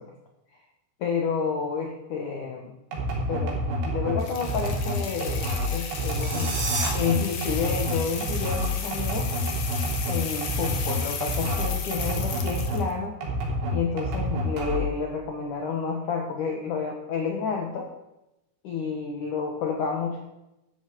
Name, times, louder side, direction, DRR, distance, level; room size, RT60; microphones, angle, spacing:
voice 1, 1.0-2.8 3.3-5.5 5.7-6.5 6.9-9.3 10.1-13.1 13.7-17.9 18.6-20.2, left 5 dB, 70° left, 1 dB, 2.0 m, -30 dB
sound 1, 2.9-12.9 13.2-15.0, equal, 65° right, 5.3 m, -28 dB
sound 2, 4.2-12.9, left 6 dB, 85° left, 1.4 m, -35 dB
sound 3, 5.8-6.9, right 3 dB, 45° right, 3.7 m, -31 dB
13.0 x 13.0 x 4.7 m, 0.92 s
omnidirectional pair, 5.5 m